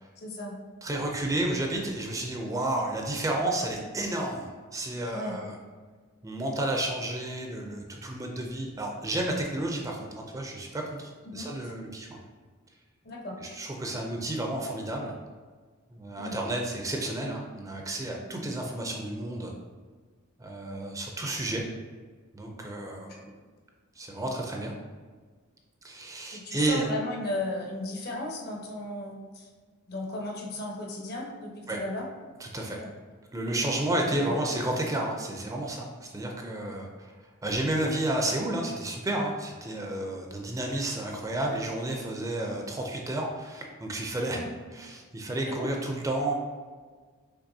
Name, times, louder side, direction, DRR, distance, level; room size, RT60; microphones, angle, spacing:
voice 1, 0.2-0.6 5.1-5.4 11.2-11.5 13.0-13.4 16.2-16.3 26.3-29.5 29.9-32.1 34.1-34.3 44.3-44.5 45.5-45.7, left 1 dB, 50° left, 0 dB, 0.8 m, -35 dB
voice 2, 0.8-5.5 6.2-12.1 13.4-15.1 15.9-19.5 20.4-21.6 22.3-23.4 24.0-24.7 25.8-26.9 31.7-31.8 32.4-32.8 33.3-37.1 37.4-44.5 44.7-46.3, right 1 dB, 15° right, 1 dB, 0.4 m, -31 dB
5.8 x 3.3 x 2.7 m, 1.5 s
head